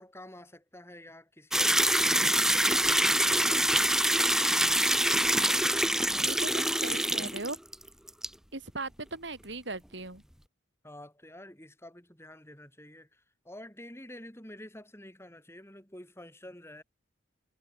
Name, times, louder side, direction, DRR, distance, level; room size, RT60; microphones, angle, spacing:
voice 1, 0.0-3.7 6.1-6.4 7.1-7.3 10.8-16.8, left 1 dB, 15° left, 7.3 m, -49 dB
sound 1, 1.5-7.8 8.1-8.3, right 1 dB, 5° right, 0.9 m, -25 dB
voice 2, 6.2-7.6 8.5-10.2, right 2 dB, 65° right, 3.7 m, -39 dB
head